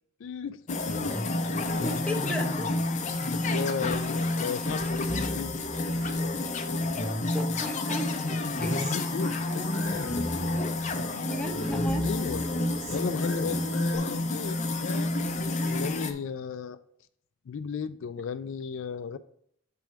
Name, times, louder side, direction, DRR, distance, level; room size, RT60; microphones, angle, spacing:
voice 1, 0.2-1.3 3.3-5.5 8.9-10.1 12.0-12.4 12.9-16.8 17.5-19.2, left 6 dB, 75° left, 0.4 m, -35 dB
sound 1, 0.7-16.1, left 2 dB, 40° left, 0.7 m, -29 dB
voice 2, 1.8-2.7 7.3-8.1 8.6-8.8 11.2-12.7, equal, 5° left, 0.9 m, -35 dB
Human voice, 6.0-7.1 7.5-10.7 11.0-11.7 12.0-14.0, right 3 dB, 70° right, 2.0 m, -48 dB
7.5 x 3.5 x 5.9 m
head